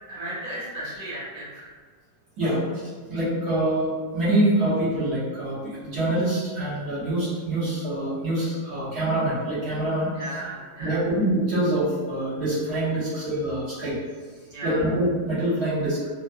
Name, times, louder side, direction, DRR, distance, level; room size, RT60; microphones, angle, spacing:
voice 1, 0.1-1.6 10.1-11.0 14.5-14.9, right 1 dB, 25° right, -11 dB, 1.2 m, -35 dB
voice 2, 3.1-10.1 10.8-14.0 14.6-16.0, right 1 dB, 60° right, -12 dB, 1.8 m, -25 dB
4.2 x 2.2 x 2.5 m, 1.6 s
omnidirectional pair, 1.9 m